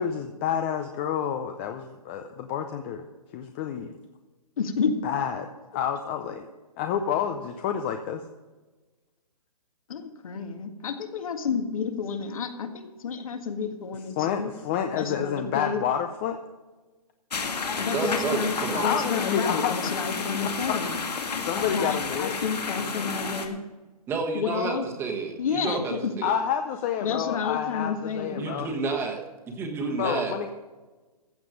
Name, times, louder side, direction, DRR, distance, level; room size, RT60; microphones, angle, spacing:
voice 1, 0.0-3.0 3.3-4.0 5.0-6.5 6.8-8.2 14.2-16.4 18.7-19.9 20.4-21.0 21.4-22.4 26.2-28.7 30.0-30.5, left 8 dB, 20° left, 6 dB, 0.5 m, -29 dB
voice 2, 4.6-5.0 9.9-14.5 14.9-15.8 17.8-21.0 21.7-23.6 24.3-24.8 25.4-26.1 27.0-28.4, left 6 dB, 60° left, 6 dB, 1.7 m, -30 dB
sound 1, 17.3-23.5, left 5 dB, 85° left, 2.0 m, -31 dB
voice 3, 17.9-19.1 24.1-26.3 28.4-30.4, right 4 dB, 10° right, 3 dB, 1.3 m, -30 dB
14.5 x 7.7 x 5.1 m, 1.2 s
hypercardioid pair, 155°, 20 cm